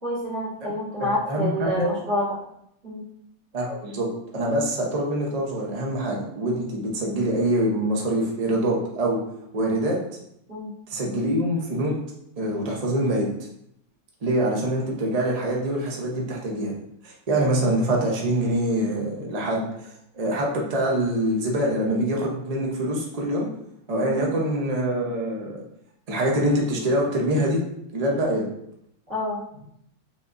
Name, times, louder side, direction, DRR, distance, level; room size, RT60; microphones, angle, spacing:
voice 1, 0.0-2.4 2.8-3.0 10.5-10.7 24.0-24.2 29.1-29.4, equal, 35° right, -14 dB, 2.0 m, -28 dB
voice 2, 1.2-1.9 3.5-4.1 4.3-9.2 9.5-10.0 10.9-11.9 12.4-13.3 14.2-16.7 17.0-19.6 20.1-23.5 23.9-25.6 26.1-27.6 27.9-28.4, right 1 dB, 75° right, -2 dB, 0.3 m, -24 dB
5.0 x 3.4 x 2.6 m, 0.74 s
omnidirectional pair, 2.0 m